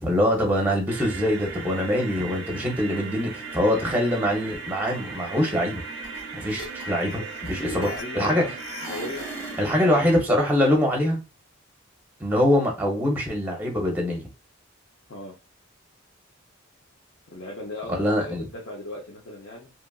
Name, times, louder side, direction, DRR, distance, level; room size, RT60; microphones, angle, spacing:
voice 1, 0.0-5.8 6.3-7.2 7.5-7.9 8.1-8.4 9.6-11.2 12.2-14.3 17.9-18.4, left 1 dB, 10° right, 0 dB, 0.7 m, -23 dB
sound 1, 0.9-10.2, right 4 dB, 55° right, 0.4 m, -37 dB
sound 2, 6.0-6.2 6.5-8.3 8.6-9.7, equal, 80° left, 1.6 m, -38 dB
voice 2, 7.2-8.5 8.9-9.9 15.1-15.4 17.3-19.7, left 1 dB, 55° left, -3 dB, 0.6 m, -38 dB
2.8 x 2.3 x 2.3 m, 0.30 s
head